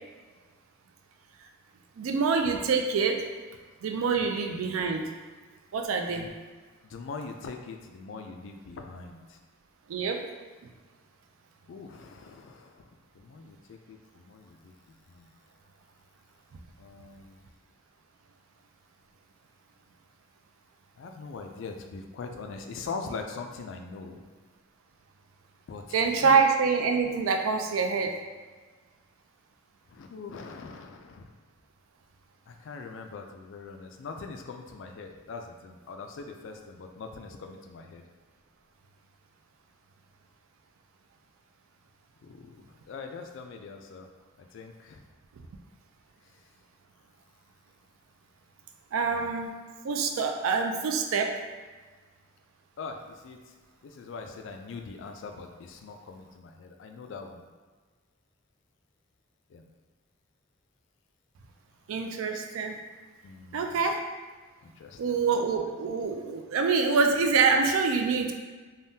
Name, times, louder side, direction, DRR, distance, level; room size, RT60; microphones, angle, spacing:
voice 1, 2.0-3.2 3.8-5.1 5.7-6.3 9.9-10.2 25.9-28.1 48.9-49.6 49.8-51.4 61.9-62.8 63.5-64.0 65.0-68.3, right 5 dB, 90° right, 4 dB, 0.4 m, -26 dB
voice 2, 6.8-9.4 11.7-15.3 16.8-17.5 21.0-24.2 25.7-26.4 29.9-31.3 32.5-38.1 42.2-44.1 44.4-45.0 49.1-49.3 52.8-53.5 53.8-57.5 59.5-59.6 63.2-63.8 64.6-65.2, left 4 dB, 65° left, 4 dB, 0.3 m, -42 dB
3.4 x 2.1 x 2.7 m, 1.4 s
head